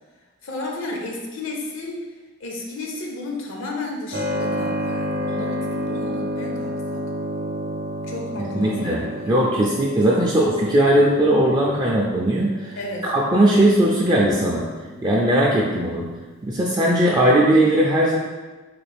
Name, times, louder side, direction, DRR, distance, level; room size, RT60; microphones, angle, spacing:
voice 1, 0.4-2.0 2.4-7.0 8.0-9.8 12.7-13.1, left 2 dB, 75° left, 1 dB, 0.6 m, -33 dB
Keyboard (musical), 4.1-16.5, equal, 50° right, 0.7 m, -31 dB
voice 2, 8.5-12.8 13.0-14.7 15.0-16.1 16.4-18.2, right 1 dB, 20° right, -4 dB, 0.3 m, -18 dB
3.9 x 2.4 x 3.3 m, 1.2 s
head